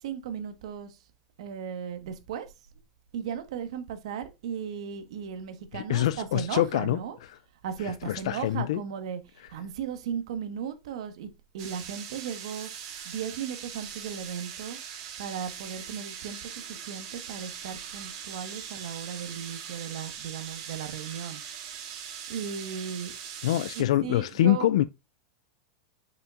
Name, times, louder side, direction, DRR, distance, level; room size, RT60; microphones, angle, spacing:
voice 1, 0.0-1.0 1.4-2.5 3.1-7.2 7.6-11.3 11.5-12.7 13.0-14.8 15.2-21.4 22.3-23.1 23.7-24.7, right 8 dB, 75° right, 1.4 m, -36 dB
voice 2, 5.7-7.4 7.8-8.8 23.4-24.9, left 13 dB, 75° left, 0.3 m, -25 dB
sound 1, 11.6-23.8, right 8 dB, 50° right, 2.6 m, -41 dB
6.8 x 5.7 x 2.5 m
supercardioid pair, 150°, 3 cm